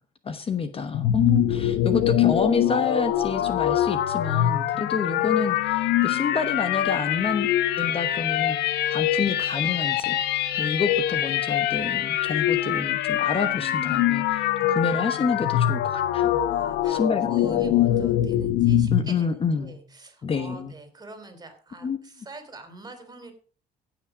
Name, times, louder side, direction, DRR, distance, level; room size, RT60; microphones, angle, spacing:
voice 1, 0.2-7.5 7.8-10.2 10.6-16.4 16.9-17.8 18.9-19.8 20.2-20.7 21.8-22.0, left 5 dB, 35° left, 9 dB, 1.1 m, -28 dB
sound 1, 0.9-19.1, left 11 dB, 85° left, 0.9 m, -24 dB
voice 2, 16.5-23.3, right 2 dB, 25° right, 8 dB, 3.2 m, -45 dB
16.5 x 6.1 x 4.9 m, 0.40 s
cardioid pair, 110°, 17 cm